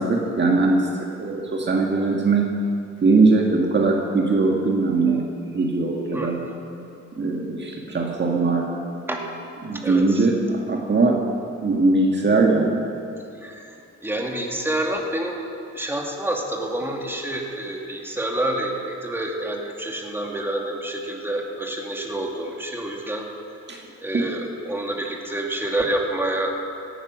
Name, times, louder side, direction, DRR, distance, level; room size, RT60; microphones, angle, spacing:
voice 1, 0.0-2.5 3.0-5.2 5.5-6.4 7.2-8.8 9.6-11.2 11.6-12.8 23.7-23.8 24.1-24.2, right 3 dB, 35° right, 0 dB, 1.6 m, -20 dB
voice 2, 9.7-10.3 13.4-13.8 14.0-15.4 15.7-23.3 24.0-26.6, right 1 dB, 5° right, 0 dB, 2.3 m, -28 dB
17.5 x 10.0 x 6.3 m, 2.6 s
cardioid pair, 90°, 30 cm